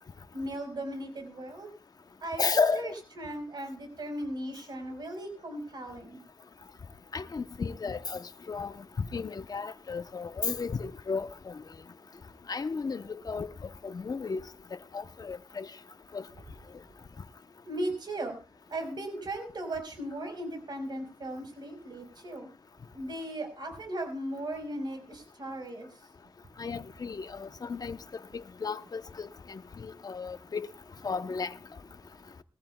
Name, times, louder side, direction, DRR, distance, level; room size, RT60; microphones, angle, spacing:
voice 1, 0.3-1.7 2.2-6.2 17.7-18.4 18.7-22.5 22.9-25.9, right 1 dB, 65° right, 4.6 m, -37 dB
voice 2, 2.4-2.8 7.1-8.7 9.1-11.5 12.5-14.5 14.7-15.7 16.1-16.2 26.6-28.0 28.3-30.7 31.0-31.5, left 4 dB, 55° left, 0.8 m, -33 dB
21.0 x 15.0 x 2.3 m
wide cardioid pair, 90°, 8 cm